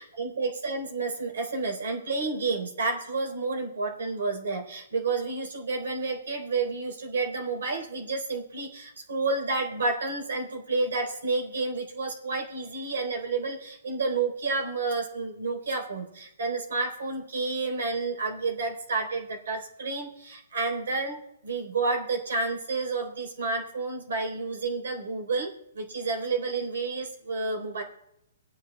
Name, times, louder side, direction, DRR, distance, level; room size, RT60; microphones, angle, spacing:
voice 1, 0.0-27.8, right 3 dB, 80° right, 1 dB, 3.4 m, -30 dB
23.5 x 9.7 x 2.2 m, 0.81 s
hypercardioid pair, 160°, 0 cm